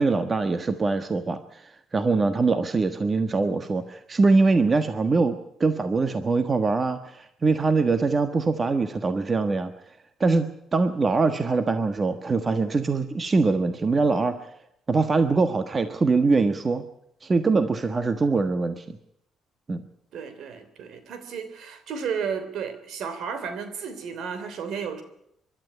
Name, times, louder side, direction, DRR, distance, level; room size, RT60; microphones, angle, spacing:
voice 1, 0.0-9.7 10.2-14.3 14.9-16.8 17.2-19.0 19.7-19.8, right 3 dB, 35° right, 9 dB, 1.4 m, -23 dB
voice 2, 20.1-25.0, right 6 dB, 70° right, 10 dB, 3.2 m, -33 dB
24.0 x 12.0 x 9.9 m, 0.78 s
cardioid pair, 80°, 0 cm